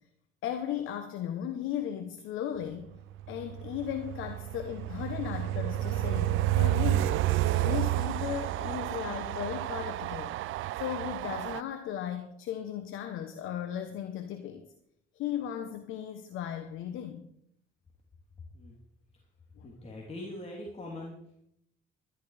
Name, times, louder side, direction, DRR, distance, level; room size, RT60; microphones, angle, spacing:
voice 1, 0.4-3.0 3.3-10.3 10.8-14.7 15.1-17.3 19.6-19.7, left 10 dB, 85° left, 7 dB, 1.1 m, -36 dB
Train, 3.2-11.6, right 14 dB, 80° right, 0.5 m, -30 dB
voice 2, 19.6-21.2, left 1 dB, 30° left, -2 dB, 3.2 m, -42 dB
12.5 x 11.0 x 5.0 m, 0.74 s
cardioid pair, 90°, 20 cm